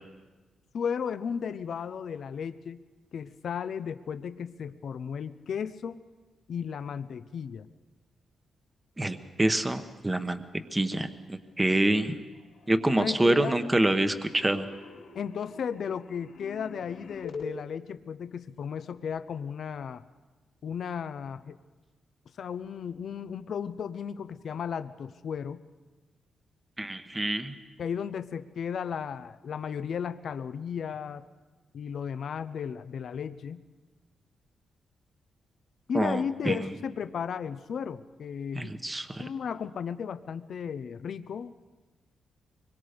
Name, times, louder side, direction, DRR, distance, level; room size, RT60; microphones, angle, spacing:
voice 1, 0.7-2.8 3.1-6.0 6.5-7.7 13.0-13.6 15.1-20.0 20.6-21.6 22.4-25.6 27.8-31.2 31.7-33.6 35.9-38.7 39.2-41.6, left 7 dB, 60° left, 12 dB, 0.7 m, -35 dB
voice 2, 9.0-10.4 10.7-12.1 12.7-14.7 26.8-27.5 35.9-36.6 38.5-39.2, right 1 dB, 15° right, 8 dB, 1.1 m, -26 dB
sound 1, 11.5-12.1 12.3-17.5, left 5 dB, 80° left, 3.4 m, -46 dB
24.5 x 22.0 x 5.1 m, 1.2 s
cardioid pair, 120°, 0 cm